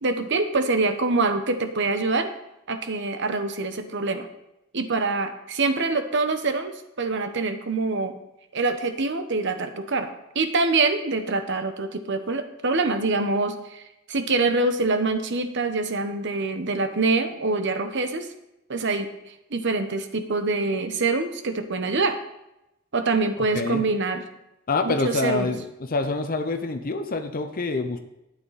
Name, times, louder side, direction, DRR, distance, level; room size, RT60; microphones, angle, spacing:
voice 1, 0.0-2.3 2.7-4.3 4.7-8.2 8.5-13.8 14.1-18.3 18.7-19.1 19.5-22.2 22.9-24.2 24.8-25.5, right 3 dB, 60° right, 8 dB, 1.1 m, -25 dB
voice 2, 24.7-28.0, left 3 dB, 45° left, 7 dB, 0.8 m, -26 dB
12.0 x 9.3 x 4.2 m, 0.88 s
head